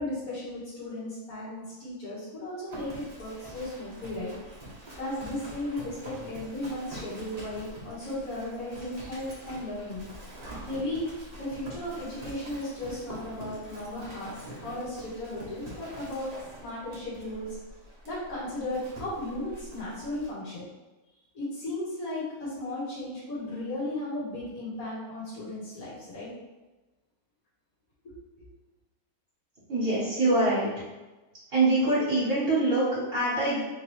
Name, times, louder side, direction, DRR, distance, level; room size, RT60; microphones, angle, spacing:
voice 1, 0.0-4.3 5.0-10.0 10.6-11.1 11.4-14.3 14.6-16.3 16.6-17.6 18.0-20.7 21.3-26.3 28.0-28.5, left 1 dB, 70° left, -10 dB, 1.8 m, -35 dB
Livestock farm animals working animals, 2.7-20.3, right 1 dB, 30° right, 1.0 m, -45 dB
voice 2, 29.7-30.7 31.5-33.6, right 2 dB, 60° right, -9 dB, 1.5 m, -24 dB
3.7 x 2.9 x 3.1 m, 1.1 s
omnidirectional pair, 1.6 m